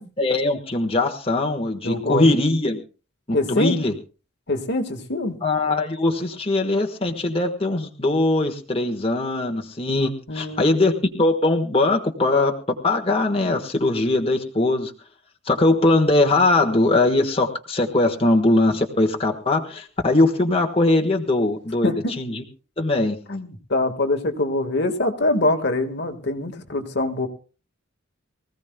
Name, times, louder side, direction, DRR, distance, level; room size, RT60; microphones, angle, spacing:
voice 1, 0.2-2.8 3.3-3.9 5.4-12.6 12.8-14.9 15.5-22.4 22.8-23.2, left 2 dB, 25° left, 2 dB, 1.4 m, -21 dB
voice 2, 1.8-2.3 3.3-3.7 4.5-5.4 10.3-10.8 21.8-22.1 23.3-27.3, left 2 dB, 55° left, 6 dB, 1.7 m, -24 dB
24.0 x 16.0 x 2.3 m, 0.35 s
head